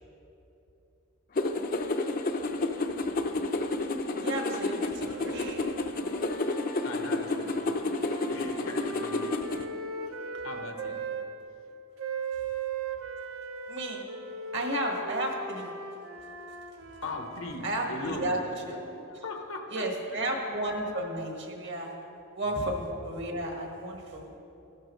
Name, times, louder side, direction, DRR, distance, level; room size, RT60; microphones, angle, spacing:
sound 1, 1.4-9.6, left 2 dB, 45° left, 0.5 m, -30 dB
voice 1, 4.2-5.7 13.7-14.0 14.5-15.7 17.6-18.4 18.7-18.8 19.7-21.9 22.3-24.4, right 1 dB, 55° right, 1 dB, 1.6 m, -33 dB
sound 2, 5.0-11.3 12.0-19.1, right 4 dB, 75° right, 0.8 m, -39 dB
voice 2, 6.8-9.3 10.1-11.2 17.0-18.4 19.1-20.2, left 2 dB, 80° left, 5 dB, 1.0 m, -40 dB
14.5 x 11.5 x 3.2 m, 2.8 s
head